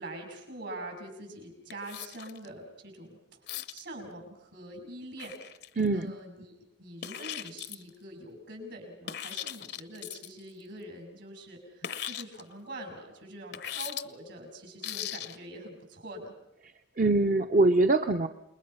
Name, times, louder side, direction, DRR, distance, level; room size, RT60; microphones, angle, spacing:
voice 1, 0.0-3.4 3.7-5.4 5.9-16.3, right 1 dB, 70° right, 3 dB, 6.6 m, -44 dB
sound 1, 1.7-2.5 3.5-3.8 5.2-6.0 7.0-7.9 9.1-10.4 11.8-12.4 13.5-14.0 14.8-15.4, left 10 dB, 60° left, 0.7 m, -38 dB
voice 2, 5.8-6.1 17.0-18.3, right 2 dB, 45° right, 6 dB, 0.7 m, -23 dB
28.5 x 21.5 x 5.7 m, 0.84 s
head